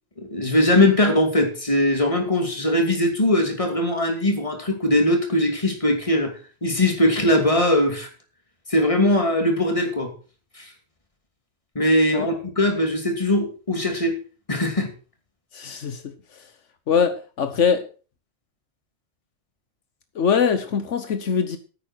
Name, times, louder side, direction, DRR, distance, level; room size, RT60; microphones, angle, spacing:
voice 1, 0.2-6.3 6.6-8.1 8.7-10.1 10.6-10.7 11.7-14.1 14.5-14.9, left 1 dB, 25° left, 4 dB, 2.7 m, -20 dB
voice 2, 15.5-16.0 16.9-17.8 20.1-21.6, left 6 dB, 80° left, 9 dB, 1.3 m, -22 dB
9.6 x 8.9 x 6.1 m, 0.37 s
omnidirectional pair, 1.2 m